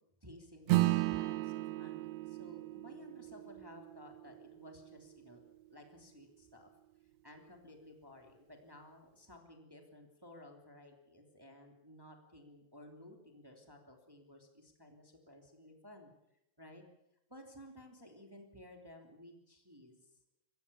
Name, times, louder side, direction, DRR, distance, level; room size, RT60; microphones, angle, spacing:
voice 1, 0.0-5.4 5.7-6.7 7.2-16.1 16.6-16.8 17.3-20.1, left 1 dB, 5° right, 3 dB, 2.3 m, -56 dB
Acoustic guitar / Strum, 0.7-5.5, right 18 dB, 85° right, 3.0 m, -35 dB
25.5 x 14.5 x 8.5 m, 0.87 s
omnidirectional pair, 4.7 m